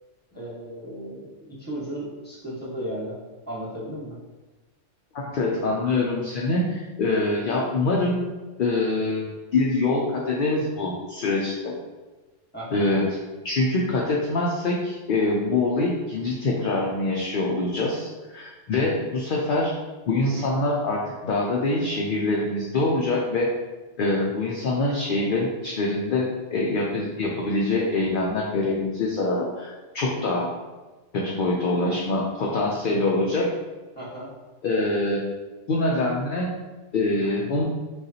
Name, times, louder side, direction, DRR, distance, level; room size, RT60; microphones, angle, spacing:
voice 1, 0.3-3.1 3.5-4.1 12.5-12.8 33.9-34.3, right 1 dB, 10° left, -7 dB, 1.2 m, -35 dB
voice 2, 5.1-8.3 8.6-11.8 12.7-13.1 13.4-19.7 20.1-23.5 24.0-30.5 31.1-33.5 34.6-35.2 35.7-36.5 36.9-37.6, left 2 dB, 55° left, -2 dB, 0.6 m, -24 dB
6.4 x 2.4 x 2.8 m, 1.2 s
omnidirectional pair, 1.3 m